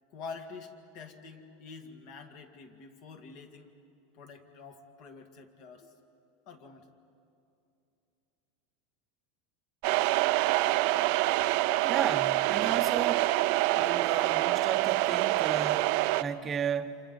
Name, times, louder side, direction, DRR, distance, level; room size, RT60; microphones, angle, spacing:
voice 1, 0.1-3.7 4.1-5.9 6.5-6.9, left 4 dB, 45° left, 2.0 m, -47 dB
sound 1, 9.8-16.2, right 18 dB, 50° right, 0.5 m, -26 dB
voice 2, 11.8-13.4 13.8-17.0, right 7 dB, 20° right, 0.9 m, -34 dB
29.5 x 27.0 x 5.5 m
supercardioid pair, 160°, 0 cm